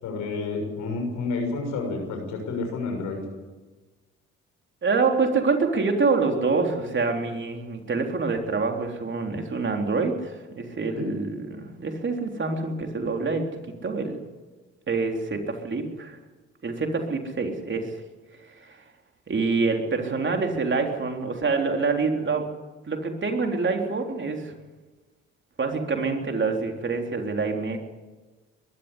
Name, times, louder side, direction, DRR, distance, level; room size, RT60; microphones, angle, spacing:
voice 1, 0.0-3.2 11.0-11.1, left 3 dB, 75° left, 3 dB, 6.6 m, -30 dB
voice 2, 4.8-14.2 14.9-16.2 16.6-17.9 18.5-18.8 19.3-22.5 22.9-24.5 25.6-27.8, right 4 dB, 40° right, 3 dB, 3.7 m, -26 dB
21.5 x 13.0 x 9.9 m, 1.2 s
supercardioid pair, 55°, 30 cm